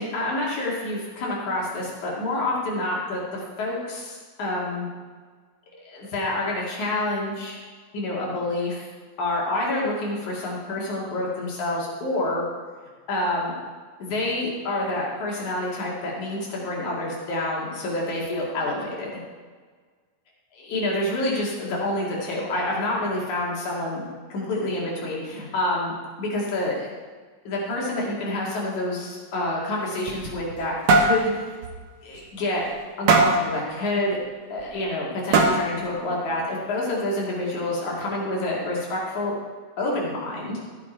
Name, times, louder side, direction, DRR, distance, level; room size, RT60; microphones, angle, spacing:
voice 1, 0.0-4.9 5.7-7.6 7.9-8.9 9.2-12.4 13.1-13.5 14.0-19.1 20.5-24.0 24.3-26.9 27.5-31.5 32.0-32.6 33.0-34.2 34.5-39.3 39.8-40.6, left 1 dB, 65° left, -3 dB, 3.6 m, -28 dB
sound 1, 29.9-30.6 30.9-31.2 31.6-31.8 32.2-32.3 33.1-33.4 34.6-34.7 35.3-35.8, right 3 dB, 60° right, 1.7 m, -18 dB
14.0 x 8.3 x 4.4 m, 1.5 s
omnidirectional pair, 3.6 m